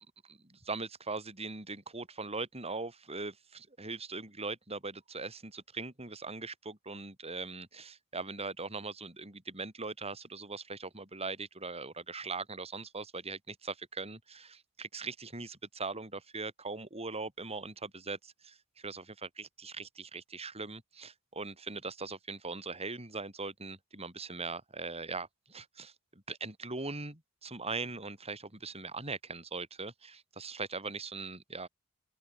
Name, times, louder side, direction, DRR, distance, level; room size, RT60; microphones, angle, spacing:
voice 1, 0.2-25.9 26.3-31.7, right 3 dB, 30° right, 6.9 m, -40 dB
open air
head